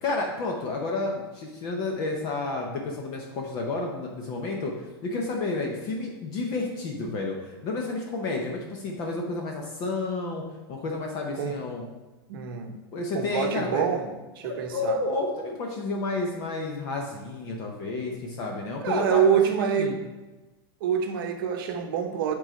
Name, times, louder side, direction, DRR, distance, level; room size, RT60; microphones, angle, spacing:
voice 1, 0.0-4.7 5.0-10.4 10.7-11.9 12.9-13.8 14.4-19.2 19.8-20.0, left 3 dB, 30° left, 1 dB, 0.7 m, -30 dB
voice 2, 12.3-12.7 13.1-14.1 14.4-15.0 18.8-20.0 20.8-22.3, right 8 dB, 55° right, 5 dB, 0.9 m, -26 dB
7.7 x 3.8 x 4.4 m, 1.1 s
supercardioid pair, 170°, 13 cm